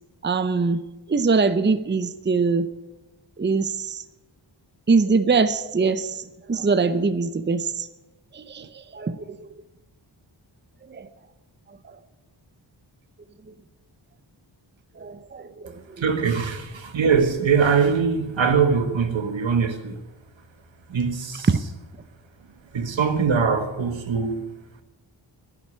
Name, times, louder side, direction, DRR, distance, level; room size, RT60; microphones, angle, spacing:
voice 1, 0.2-0.8 1.1-2.7 3.4-4.0 4.9-7.9 8.3-9.3 10.9-11.1 15.0-15.8 21.5-21.6, right 4 dB, 25° right, 0.7 m, -23 dB
voice 2, 16.0-20.0 20.9-21.5 22.7-24.4, right 6 dB, 80° right, 1.7 m, -22 dB
11.5 x 11.0 x 9.8 m
wide cardioid pair, 85°, 45 cm